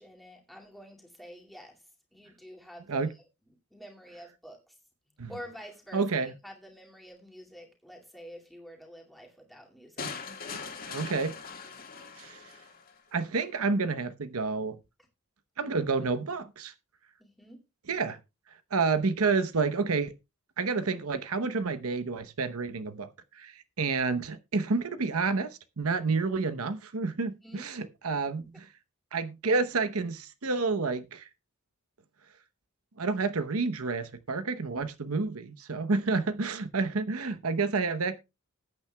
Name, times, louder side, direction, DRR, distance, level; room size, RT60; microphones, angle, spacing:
voice 1, 0.0-1.8 2.1-3.2 3.7-4.7 5.3-10.1 17.2-17.6 27.2-27.7, equal, ahead, 2.3 m, -48 dB
voice 2, 5.9-6.3 10.0-10.4 10.6-11.3 12.2-12.4 13.1-14.8 15.6-16.7 17.9-18.2 18.7-20.1 20.6-23.1 23.3-28.7 29.1-31.3 33.0-38.2, right 4 dB, 85° right, 0.9 m, -29 dB
sound 1, 10.0-13.0, left 5 dB, 45° left, 1.8 m, -41 dB
20.0 x 8.8 x 2.3 m
head